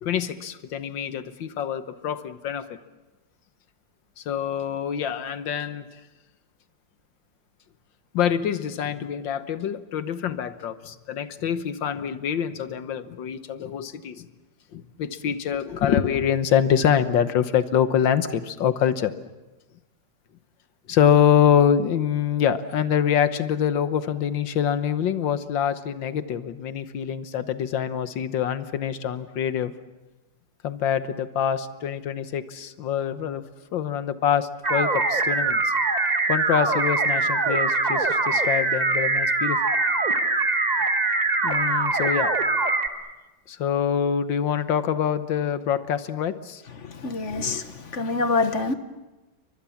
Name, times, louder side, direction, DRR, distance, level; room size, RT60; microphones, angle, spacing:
voice 1, 0.0-2.8 4.2-5.9 8.1-14.3 14.7-19.1 20.9-29.7 30.6-33.4 33.7-35.7 36.3-39.6 41.4-42.3 43.5-46.6, left 8 dB, 90° left, 12 dB, 1.8 m, -25 dB
sound 1, 34.6-42.9, right 3 dB, 25° right, 1.4 m, -23 dB
voice 2, 46.8-48.7, left 3 dB, 45° left, 10 dB, 1.5 m, -26 dB
30.0 x 23.5 x 7.2 m, 1.1 s
omnidirectional pair, 2.0 m